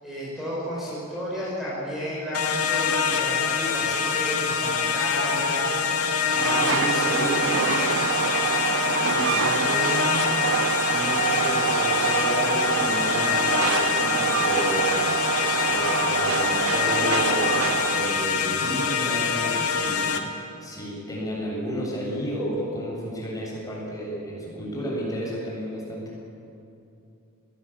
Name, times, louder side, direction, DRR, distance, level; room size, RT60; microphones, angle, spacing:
voice 1, 0.0-5.8 6.3-8.2, equal, ahead, -8 dB, 6.1 m, -33 dB
sound 1, 2.3-20.2, left 6 dB, 90° left, 2.1 m, -25 dB
Train, 6.3-18.2, right 7 dB, 60° right, 0.5 m, -26 dB
voice 2, 6.4-7.4 9.1-10.3 10.9-15.0 15.7-26.1, equal, 15° left, -4 dB, 7.9 m, -32 dB
20.5 x 19.0 x 8.8 m, 2.6 s
head